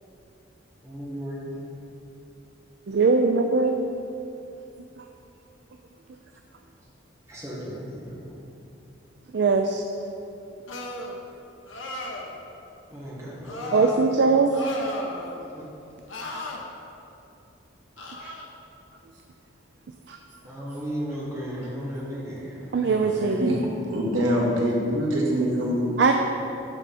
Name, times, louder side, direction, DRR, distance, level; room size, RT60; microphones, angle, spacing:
voice 1, 0.8-1.6 6.8-6.9 7.3-8.4 12.9-13.9 15.5-15.6 16.1-16.3 18.2-18.3 20.4-23.4, equal, 15° right, -7 dB, 1.8 m, -36 dB
voice 2, 2.9-3.8 9.3-9.8 13.7-14.5 20.1-20.2 22.7-23.6 26.0-26.1, right 4 dB, 60° right, 4 dB, 0.4 m, -21 dB
sound 1, 10.7-11.2 11.7-12.3 13.4-14.0 14.5-15.4 16.1-16.6 18.0-18.5, left 2 dB, 75° left, 1.0 m, -35 dB
voice 3, 23.9-26.1, equal, 90° right, -3 dB, 1.7 m, -24 dB
11.5 x 4.8 x 4.3 m, 2.8 s
head